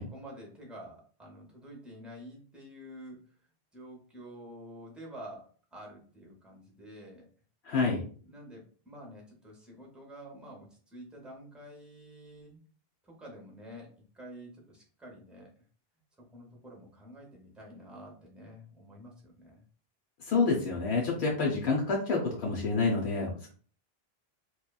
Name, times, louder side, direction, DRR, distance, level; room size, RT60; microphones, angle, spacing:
voice 1, 0.0-3.3 3.7-7.3 8.2-12.6 13.0-15.5 16.2-19.6, equal, ahead, -1 dB, 0.5 m, -49 dB
voice 2, 7.6-8.1 20.2-23.5, left 4 dB, 90° left, -1 dB, 0.8 m, -28 dB
2.9 x 2.2 x 2.2 m, 0.43 s
omnidirectional pair, 1.1 m